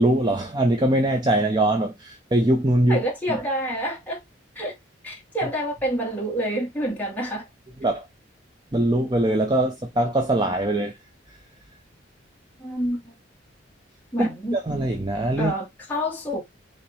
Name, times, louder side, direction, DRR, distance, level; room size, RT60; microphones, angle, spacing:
voice 1, 0.0-3.0 3.3-3.4 7.8-8.1 8.7-11.0 14.2-15.5, right 1 dB, 20° right, 0.5 m, -22 dB
voice 2, 2.9-4.2 4.6-4.7 5.0-7.5 12.6-13.1 14.1-14.6 15.4-16.4, equal, 10° left, 2.1 m, -28 dB
5.7 x 2.9 x 3.1 m
head